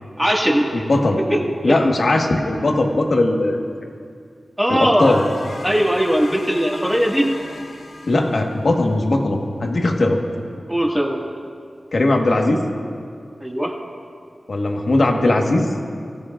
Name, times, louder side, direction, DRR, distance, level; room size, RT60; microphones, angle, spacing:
voice 1, 0.2-0.7 1.3-1.4 1.6-2.2 4.6-5.2 5.6-7.3 10.7-11.2 13.4-13.7, equal, 5° right, -2 dB, 1.9 m, -19 dB
voice 2, 0.7-1.2 1.6-3.6 4.7-5.2 8.0-10.2 11.9-12.6 14.5-15.7, left 2 dB, 60° left, 2 dB, 1.4 m, -19 dB
sound 1, 5.0-8.9, left 2 dB, 90° left, 1.5 m, -37 dB
24.5 x 16.0 x 2.5 m, 2.3 s
wide cardioid pair, 105°, 0 cm